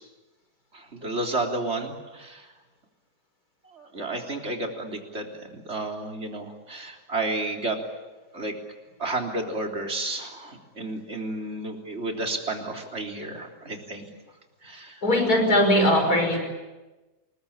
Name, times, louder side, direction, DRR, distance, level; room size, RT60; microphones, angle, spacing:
voice 1, 0.7-2.5 3.7-7.8 8.3-8.5 9.0-14.0 14.6-15.0, right 2 dB, 40° right, 2 dB, 3.8 m, -32 dB
voice 2, 15.0-16.4, left 1 dB, 65° left, 5 dB, 6.0 m, -20 dB
28.5 x 21.5 x 8.7 m, 1.1 s
omnidirectional pair, 1.7 m